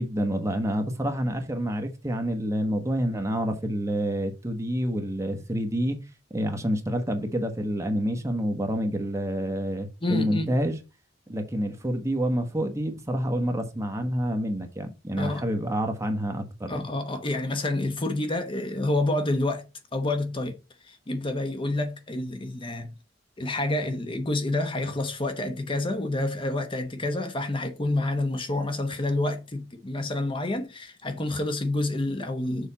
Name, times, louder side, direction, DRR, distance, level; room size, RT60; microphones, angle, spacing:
voice 1, 0.0-6.0 6.3-10.8 11.3-16.8, equal, 15° right, 1.3 m, -28 dB
voice 2, 10.0-10.5 15.2-15.4 16.7-19.7 19.9-20.6 20.9-22.9 23.4-32.7, left 2 dB, 30° left, 1.0 m, -28 dB
6.6 x 4.4 x 5.5 m
head